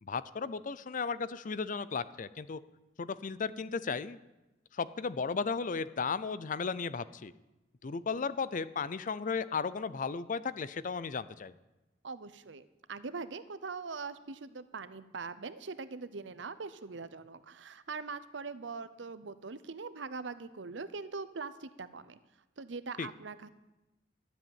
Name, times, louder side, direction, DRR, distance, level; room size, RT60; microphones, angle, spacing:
voice 1, 0.0-2.6 3.0-4.2 4.7-7.3 7.8-11.5 23.0-23.1, left 5 dB, 45° left, 16 dB, 0.5 m, -35 dB
voice 2, 12.0-22.2 22.6-23.5, right 4 dB, 80° right, 14 dB, 0.8 m, -42 dB
12.5 x 8.0 x 8.9 m, 1.0 s
head